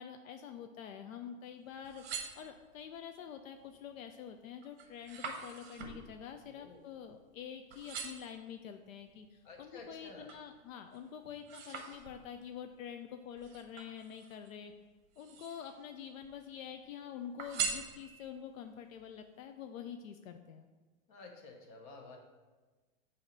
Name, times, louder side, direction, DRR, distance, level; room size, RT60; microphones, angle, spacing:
voice 1, 0.0-14.7 15.2-20.7, left 8 dB, 75° left, 6 dB, 0.5 m, -47 dB
sound 1, 1.7-3.0 3.5-3.9 4.3-7.4 7.7-8.4 9.0-10.5 10.9-12.5 13.4-14.5 15.0-15.8 16.2-16.9 17.4-18.4 19.0-19.1, right 6 dB, 45° right, 0.9 m, -43 dB
voice 2, 6.4-6.8 9.4-10.3 21.1-22.2, left 3 dB, 35° left, 1 dB, 1.0 m, -51 dB
7.1 x 2.8 x 5.3 m, 1.3 s
supercardioid pair, 160°, 41 cm